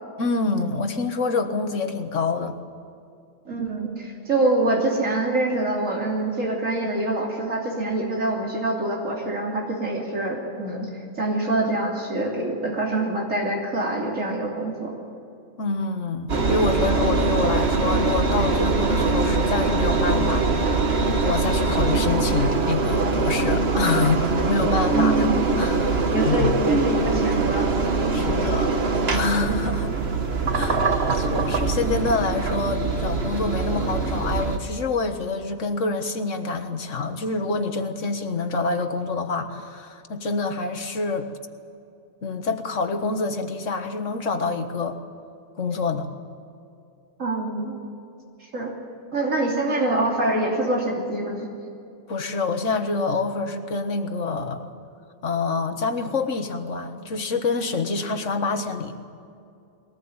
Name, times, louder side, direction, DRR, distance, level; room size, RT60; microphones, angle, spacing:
voice 1, 0.2-2.6 15.6-25.3 25.6-26.5 28.1-28.8 29.1-30.0 30.5-41.3 42.2-45.0 45.6-46.1 52.1-54.7 55.2-58.9, left 3 dB, 70° left, 7 dB, 1.8 m, -26 dB
voice 2, 3.4-10.9 11.2-14.9 24.9-25.4 26.1-27.9 47.2-47.8 48.5-48.7 49.1-51.5, right 2 dB, 80° right, -2 dB, 3.5 m, -25 dB
Engine, 16.3-34.6, right 3 dB, 50° right, 1.7 m, -23 dB
22.0 x 19.0 x 8.8 m, 2.5 s
omnidirectional pair, 1.3 m